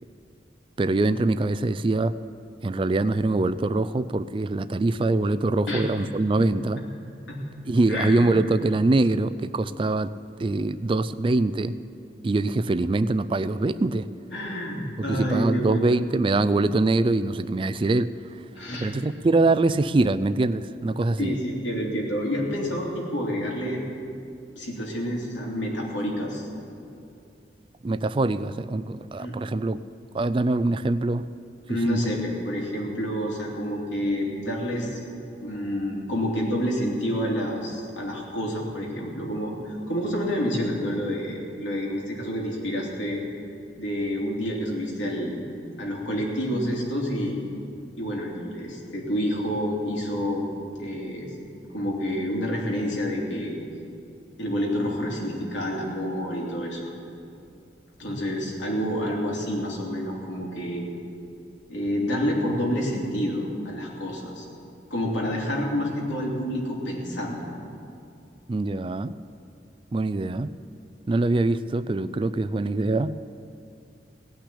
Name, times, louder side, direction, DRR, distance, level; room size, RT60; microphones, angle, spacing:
voice 1, 0.8-2.2 2.6-6.8 7.7-10.1 10.4-11.8 12.2-14.1 15.1-18.1 18.8-21.3 27.8-29.8 30.1-31.3 31.9-32.2 68.5-69.1 69.9-70.6 71.1-73.2, right 2 dB, 30° right, 14 dB, 0.3 m, -23 dB
voice 2, 7.9-8.3 14.3-15.9 18.5-18.9 21.2-23.8 24.6-26.5 29.2-29.4 31.7-35.0 35.4-43.2 43.8-45.4 45.8-47.4 48.0-50.5 50.8-51.3 51.7-53.6 54.4-56.9 58.0-60.9 61.7-64.4 64.9-67.5, equal, 85° left, -2 dB, 3.0 m, -28 dB
17.5 x 6.1 x 10.0 m, 2.6 s
head